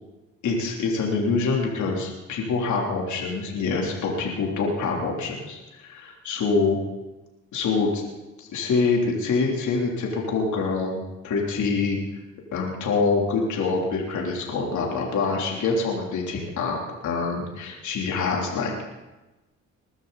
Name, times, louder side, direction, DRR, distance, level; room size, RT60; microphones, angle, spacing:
voice 1, 0.4-6.8 7.5-8.0 8.4-12.0 12.5-16.8 17.0-18.8, left 4 dB, 75° left, -1 dB, 3.4 m, -25 dB
21.0 x 12.5 x 4.1 m, 1.1 s
cardioid pair, 90°, 30 cm